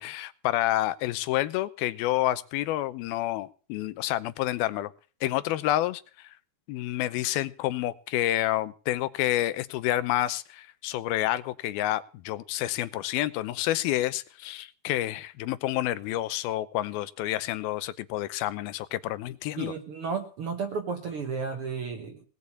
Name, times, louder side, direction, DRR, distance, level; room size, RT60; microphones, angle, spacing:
voice 1, 0.0-4.9 5.2-6.3 6.7-19.7, left 14 dB, 90° left, 16 dB, 2.7 m, -29 dB
voice 2, 19.6-22.2, right 5 dB, 60° right, 6 dB, 1.5 m, -33 dB
18.5 x 6.5 x 8.4 m, 0.39 s
omnidirectional pair, 4.2 m